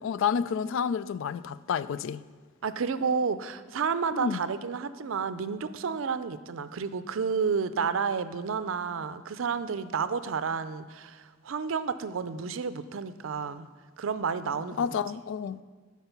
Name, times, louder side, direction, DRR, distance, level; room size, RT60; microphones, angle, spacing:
voice 1, 0.0-2.2 4.1-4.4 14.8-15.6, left 7 dB, 65° left, 0.3 m, -29 dB
voice 2, 2.6-13.7 14.0-14.9, right 5 dB, 70° right, 0.5 m, -31 dB
12.5 x 4.7 x 5.8 m
head